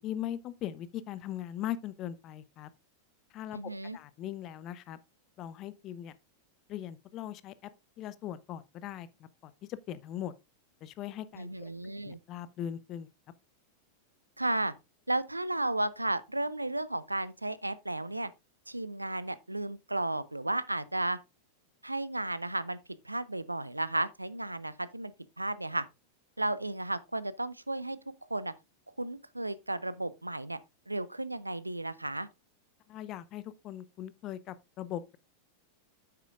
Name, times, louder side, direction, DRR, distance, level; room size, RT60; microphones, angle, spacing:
voice 1, 0.0-2.7 3.3-3.6 3.9-5.0 5.4-6.1 6.7-7.5 8.0-10.3 10.8-11.7 12.0-13.1 32.9-35.2, left 11 dB, 35° left, 0.6 m, -40 dB
voice 2, 3.5-4.0 11.4-12.2 14.4-14.7 15.1-18.3 18.7-21.2 21.8-22.8 23.0-25.9 26.4-28.0 28.3-28.5 29.0-30.6 30.9-32.3, right 2 dB, 85° right, 0.5 m, -33 dB
9.4 x 8.2 x 2.4 m
figure-of-eight pair, 90°, 0 cm